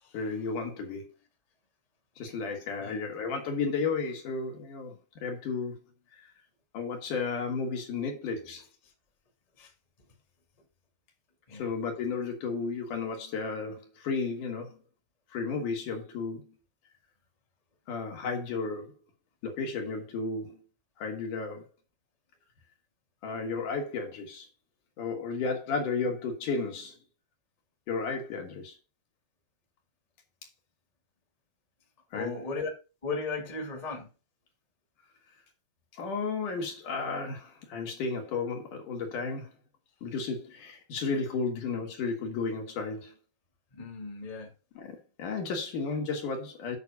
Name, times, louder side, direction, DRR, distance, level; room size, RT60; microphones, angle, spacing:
voice 1, 0.1-1.0 2.2-5.8 6.1-6.2 6.7-8.6 11.6-14.8 15.3-16.5 17.9-18.9 19.4-20.6 21.0-21.7 23.2-24.5 25.0-26.9 27.9-28.8 32.1-32.3 35.9-39.5 40.0-43.1 44.8-46.8, left 4 dB, 65° left, 3.1 m, -33 dB
voice 2, 32.1-32.7 33.0-34.1 43.7-44.5, left 4 dB, 15° left, 1.7 m, -36 dB
8.5 x 6.0 x 5.1 m
omnidirectional pair, 4.3 m